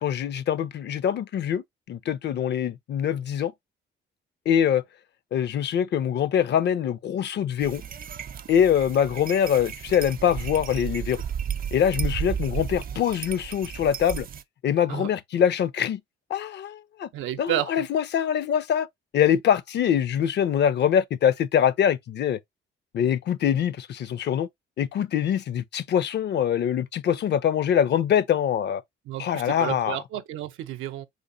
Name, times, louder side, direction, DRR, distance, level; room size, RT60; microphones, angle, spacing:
voice 1, 0.0-3.5 4.5-4.8 5.3-7.8 8.5-11.2 11.7-14.3 14.6-16.0 16.3-17.1 17.4-18.9 19.1-22.4 22.9-24.5 24.8-28.8 29.2-30.0, left 9 dB, 60° left, 0.6 m, -24 dB
sound 1, 7.6-14.4, right 8 dB, 45° right, 0.5 m, -33 dB
voice 2, 17.1-17.8 29.1-31.1, right 12 dB, 85° right, 0.6 m, -31 dB
4.7 x 3.9 x 2.6 m
cardioid pair, 90°, 20 cm